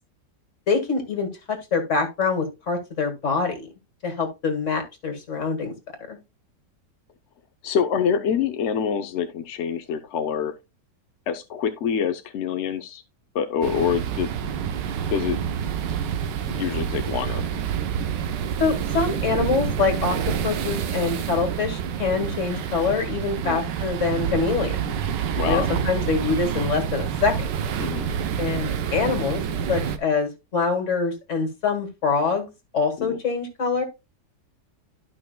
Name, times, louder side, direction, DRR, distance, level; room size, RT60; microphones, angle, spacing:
voice 1, 0.7-3.7 4.0-5.7 6.1-6.2 18.6-24.9 25.5-27.5 28.4-29.4 29.7-32.5 32.7-33.8, left 4 dB, 45° left, 2.1 m, -25 dB
voice 2, 7.6-10.5 11.3-13.0 13.3-14.3 15.1-15.4 16.4-17.4 23.4-23.6 25.3-25.7 27.8-28.1 33.0-33.2, left 7 dB, 60° left, 0.7 m, -26 dB
sound 1, 13.6-30.0, right 8 dB, 85° right, 1.5 m, -28 dB
12.5 x 5.9 x 2.2 m
omnidirectional pair, 1.9 m